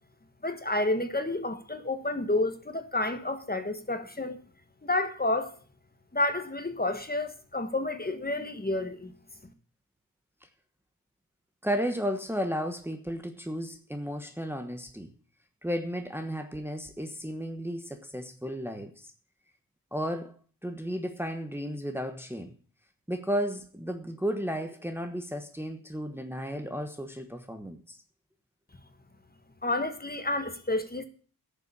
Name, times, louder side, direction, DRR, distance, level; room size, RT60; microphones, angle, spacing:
voice 1, 0.4-4.4 4.8-5.5 6.1-9.1 29.6-31.1, left 2 dB, 25° left, 1.6 m, -30 dB
voice 2, 11.6-15.1 15.6-19.1 19.9-22.5 23.1-28.0, equal, 5° right, 1.2 m, -33 dB
10.5 x 7.1 x 8.6 m
wide cardioid pair, 100°, 35 cm